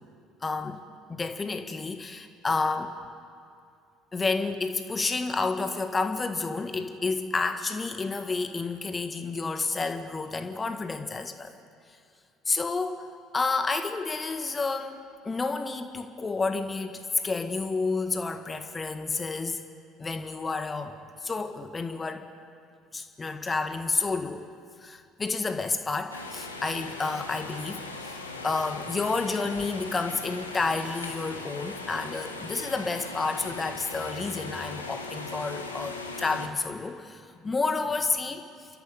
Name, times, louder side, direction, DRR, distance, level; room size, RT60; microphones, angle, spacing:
voice 1, 0.4-0.8 1.1-3.0 4.1-11.5 12.5-19.6 20.0-22.3 22.9-24.5 24.8-28.2 28.4-38.5, left 4 dB, 25° left, 7 dB, 1.7 m, -30 dB
sound 1, 26.1-36.5, left 3 dB, 85° left, 1.7 m, -39 dB
30.0 x 14.0 x 9.4 m, 2.4 s
figure-of-eight pair, 55°, 0 cm